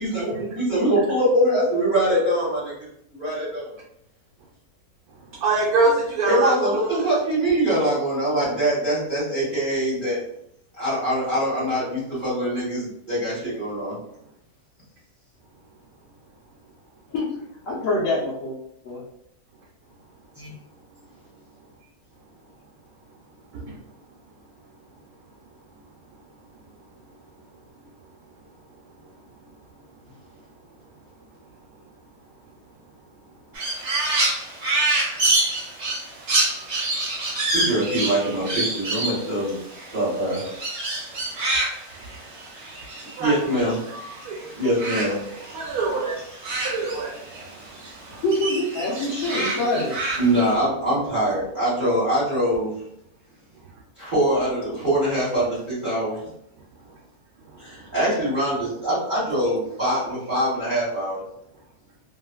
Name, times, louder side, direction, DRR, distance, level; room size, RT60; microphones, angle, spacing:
voice 1, 0.0-3.8 6.2-10.2 10.7-14.0 20.3-20.5 37.2-40.4 43.2-43.8 44.5-45.2 45.4-45.5 50.2-52.7 53.9-56.1 57.6-61.2, right 1 dB, 35° right, -12 dB, 1.3 m, -23 dB
voice 2, 5.4-7.0 23.5-23.7 43.2-43.6 44.2-44.6 45.5-46.2 46.6-47.1, right 3 dB, 85° right, -4 dB, 1.1 m, -24 dB
voice 3, 17.7-18.6 18.8-19.0 48.2-50.0, left 1 dB, 65° left, -6 dB, 1.0 m, -25 dB
Crow, 33.5-44.2 44.5-47.5 47.8-50.5, right 2 dB, 55° right, 1.1 m, -27 dB
2.9 x 2.5 x 2.3 m, 0.75 s
omnidirectional pair, 1.6 m